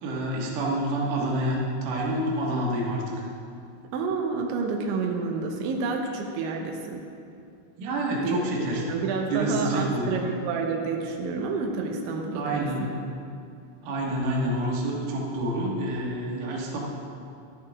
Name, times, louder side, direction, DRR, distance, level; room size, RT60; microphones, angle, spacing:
voice 1, 0.0-3.1 7.8-8.8 9.3-10.3 12.3-12.9 13.8-16.8, right 1 dB, 60° right, -3 dB, 2.6 m, -28 dB
voice 2, 3.9-7.0 8.2-8.4 8.7-12.9, right 4 dB, 85° right, 1 dB, 3.3 m, -29 dB
13.0 x 11.5 x 3.5 m, 2.5 s
omnidirectional pair, 5.2 m